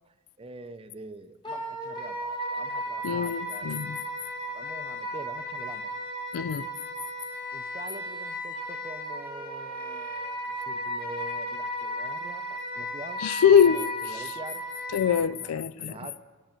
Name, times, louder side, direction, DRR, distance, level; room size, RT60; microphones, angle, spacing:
voice 1, 0.1-3.7 4.5-5.9 7.5-13.2 13.6-14.6 15.3-16.2, right 3 dB, 25° right, 0.5 m, -45 dB
Wind instrument woodwind instrument, 1.4-15.2, equal, 20° left, 1.3 m, -35 dB
voice 2, 3.0-4.0 6.3-6.7 13.2-13.8 14.9-15.9, left 8 dB, 90° left, 0.4 m, -22 dB
10.5 x 6.1 x 8.9 m
head